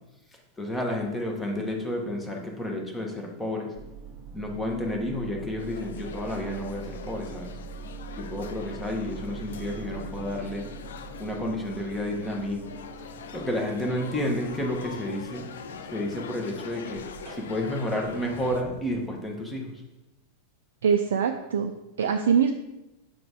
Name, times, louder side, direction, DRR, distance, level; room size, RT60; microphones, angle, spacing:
voice 1, 0.6-3.7 4.3-7.5 8.2-10.7 11.2-12.7 13.3-15.5 15.9-17.0 17.3-19.7, left 1 dB, 10° left, 0 dB, 1.2 m, -31 dB
sound 1, 3.7-19.1, right 5 dB, 40° right, 0.7 m, -43 dB
sound 2, 5.6-18.6, left 7 dB, 60° left, 0.4 m, -43 dB
voice 2, 20.8-22.5, right 7 dB, 60° right, 6 dB, 0.4 m, -23 dB
6.0 x 3.9 x 4.9 m, 0.96 s
figure-of-eight pair, 90°, 0 cm